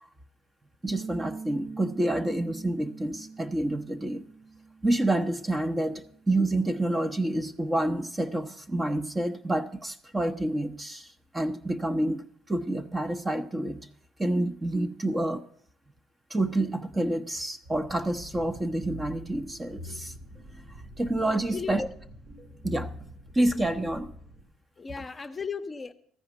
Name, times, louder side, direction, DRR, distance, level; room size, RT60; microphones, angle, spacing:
voice 1, 0.8-4.3 4.8-11.1 11.3-13.9 14.2-15.4 16.3-20.1 21.0-21.9 22.6-22.9 23.3-24.1, right 1 dB, 20° right, 10 dB, 0.8 m, -28 dB
Bass guitar, 0.9-5.2 5.5-7.1, right 4 dB, 45° right, 1.1 m, -44 dB
sound 1, 17.6-24.4, equal, 75° right, 5.0 m, -44 dB
voice 2, 21.3-21.8 24.8-25.9, left 5 dB, 30° left, 8 dB, 0.7 m, -36 dB
14.0 x 5.0 x 8.0 m, 0.62 s
hypercardioid pair, 60°, 0 cm